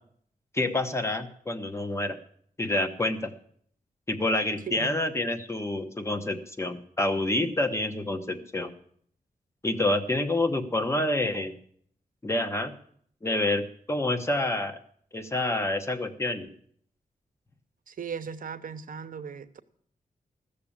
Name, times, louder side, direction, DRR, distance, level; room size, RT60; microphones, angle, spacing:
voice 1, 0.5-2.2 2.6-3.3 4.1-8.7 9.6-11.5 12.2-12.7 13.2-13.6 13.9-14.8 15.1-16.5, left 2 dB, 20° left, 8 dB, 1.1 m, -28 dB
voice 2, 4.7-5.0 17.9-19.6, right 6 dB, 65° right, 10 dB, 0.9 m, -37 dB
15.0 x 6.9 x 8.7 m, 0.62 s
wide cardioid pair, 150°, 15 cm